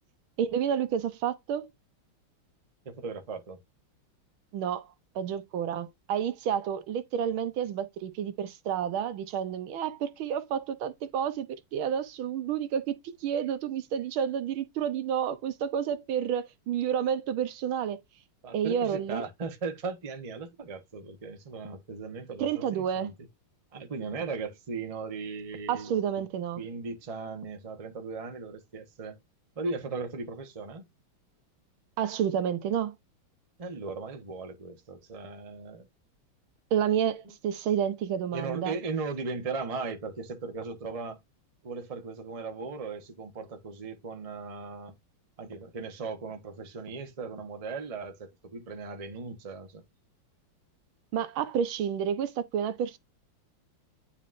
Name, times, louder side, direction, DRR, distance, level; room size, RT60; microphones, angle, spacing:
voice 1, 0.4-1.7 4.5-4.9 5.1-18.0 18.5-19.2 22.4-23.1 25.7-26.6 32.0-32.9 36.7-38.7 51.1-53.0, right 8 dB, 75° right, 1.5 m, -30 dB
voice 2, 2.8-3.6 18.4-23.1 23.7-25.9 26.6-29.2 29.6-30.8 33.6-35.9 37.2-37.3 38.3-41.2 41.6-44.9 45.4-49.8, right 4 dB, 30° right, 0.6 m, -37 dB
9.4 x 4.1 x 2.5 m
omnidirectional pair, 2.4 m